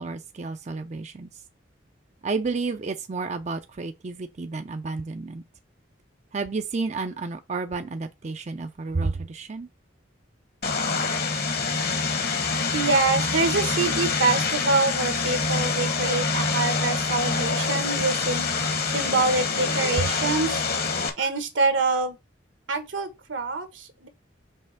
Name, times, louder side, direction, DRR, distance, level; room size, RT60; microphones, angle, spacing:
voice 1, 0.0-1.4 2.2-5.4 6.3-9.7, right 3 dB, 35° right, 0.4 m, -31 dB
Vehicle, 10.6-21.1, left 4 dB, 55° left, 1.2 m, -26 dB
voice 2, 12.7-18.5 18.9-20.6 21.2-22.2 22.7-24.1, right 3 dB, 80° right, 1.3 m, -25 dB
5.5 x 3.3 x 5.7 m
head